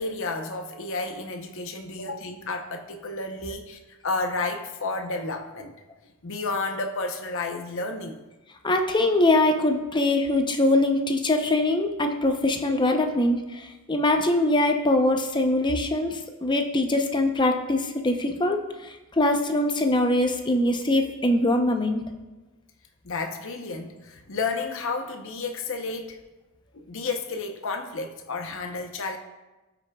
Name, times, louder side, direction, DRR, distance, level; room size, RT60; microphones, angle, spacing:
voice 1, 0.0-5.7 6.2-8.2 23.0-26.2 26.7-29.2, left 3 dB, 60° left, 4 dB, 0.8 m, -31 dB
voice 2, 8.6-22.0, left 1 dB, 20° left, 5 dB, 0.7 m, -23 dB
17.5 x 6.1 x 2.3 m, 1.1 s
head